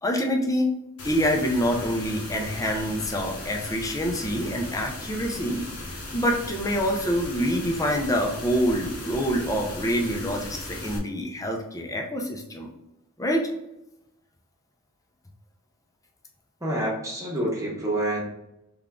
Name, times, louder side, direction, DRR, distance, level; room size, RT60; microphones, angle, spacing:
voice 1, 0.0-0.7 1.0-5.6 6.1-12.7 13.2-13.5, equal, 15° left, 2 dB, 0.7 m, -26 dB
sound 1, 1.0-11.0, left 1 dB, 75° left, 1.1 m, -37 dB
voice 2, 16.6-18.2, right 1 dB, 15° right, -3 dB, 1.1 m, -27 dB
3.7 x 3.5 x 3.6 m, 0.87 s
head